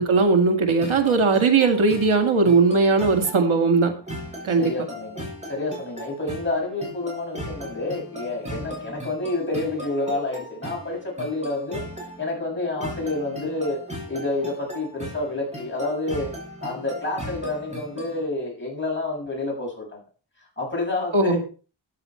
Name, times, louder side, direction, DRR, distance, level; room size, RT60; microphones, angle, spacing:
voice 1, 0.0-3.9 4.4-4.7 21.1-21.4, right 4 dB, 85° right, 5 dB, 2.4 m, -19 dB
sound 1, 0.8-18.2, equal, 15° right, 6.0 m, -37 dB
voice 2, 4.6-11.8 12.2-13.8 14.1-16.3 16.6-20.0 20.6-21.4, left 2 dB, 25° left, -2 dB, 7.2 m, -29 dB
14.0 x 10.0 x 4.5 m, 0.37 s
wide cardioid pair, 130°, 47 cm